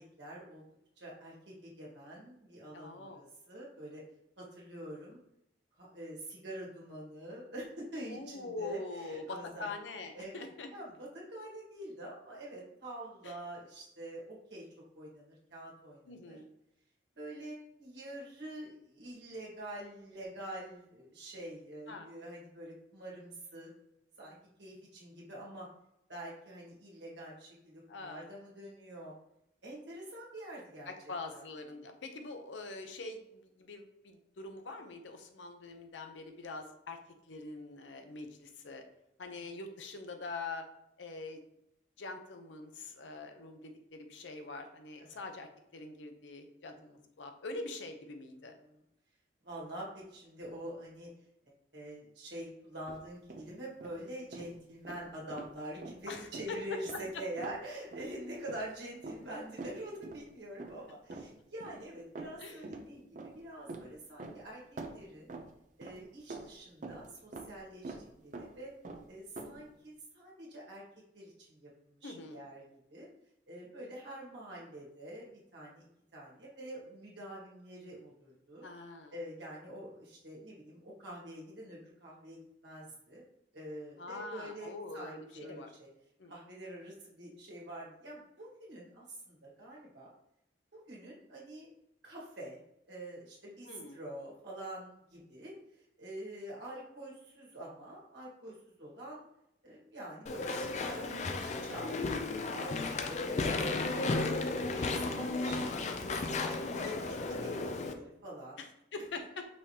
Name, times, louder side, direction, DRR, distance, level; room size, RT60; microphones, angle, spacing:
voice 1, 0.2-0.6 1.0-4.0 4.4-5.2 5.8-9.7 10.1-14.6 14.9-16.4 17.1-23.7 24.2-25.7 26.1-29.1 29.6-30.9 31.3-31.4 45.0-45.2 46.7-46.9 49.4-51.1 51.7-65.3 65.8-68.7 69.1-70.8 71.1-72.6 72.9-73.1 73.5-75.9 76.1-78.7 79.1-83.2 83.5-85.9 86.3-90.1 90.7-91.7 92.0-92.6 92.9-99.2 99.6-102.1 102.5-102.8 103.2-104.1 104.6-108.6, right 1 dB, 70° right, -5 dB, 1.6 m, -46 dB
voice 2, 2.7-3.2 8.1-10.7 13.2-13.3 16.1-16.5 21.9-22.1 27.9-28.3 30.9-37.0 37.3-38.8 39.2-40.7 41.0-41.4 42.0-48.6 56.1-57.0 62.4-62.6 72.0-72.4 78.6-79.1 84.0-85.7 86.2-86.3 93.6-94.0 108.6-109.5, left 3 dB, 80° left, 5 dB, 0.7 m, -44 dB
sound 1, 52.9-53.5 53.8-54.0 54.3-54.5 54.8-55.5 55.8-56.0 56.3-56.5 56.8-57.1 57.4-57.6 57.9-58.1 58.5-58.7 59.0-60.3 60.6-60.8 61.1-61.8 62.1-62.9 63.2-64.5 64.8-66.0 66.3-67.6 67.8-68.1 68.3-68.6 68.8-69.6, right 3 dB, 45° right, 0.5 m, -45 dB
Walk footsteps / Chatter / Squeak, 100.3-107.9, left 3 dB, 40° left, 0.4 m, -34 dB
5.4 x 3.2 x 2.8 m, 0.81 s
head